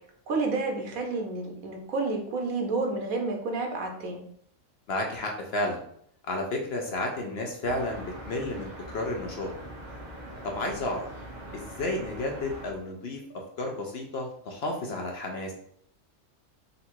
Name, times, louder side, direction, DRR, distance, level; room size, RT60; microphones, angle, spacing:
voice 1, 0.3-4.2, right 3 dB, 80° right, 3 dB, 1.3 m, -30 dB
voice 2, 4.9-5.8 6.2-9.5 10.4-11.1 11.5-13.2 13.6-15.5, left 2 dB, 55° left, 1 dB, 0.8 m, -32 dB
sound 1, 7.6-12.7, right 1 dB, 35° right, 0.9 m, -42 dB
3.9 x 2.6 x 4.4 m, 0.66 s
omnidirectional pair, 1.5 m